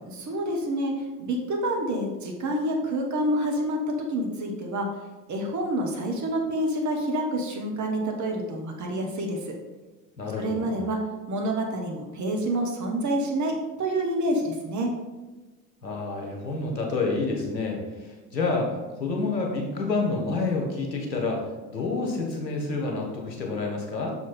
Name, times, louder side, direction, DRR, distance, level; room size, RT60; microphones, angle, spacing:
voice 1, 0.2-0.9 1.2-3.8 4.1-4.9 5.3-9.5 10.4-11.0 11.3-14.9, right 1 dB, 35° right, 1 dB, 1.3 m, -28 dB
voice 2, 10.2-10.7 15.8-18.7 19.0-21.4 21.7-24.1, left 3 dB, 85° left, 0 dB, 1.3 m, -28 dB
6.8 x 4.5 x 4.3 m, 1.2 s
figure-of-eight pair, 60°, 49 cm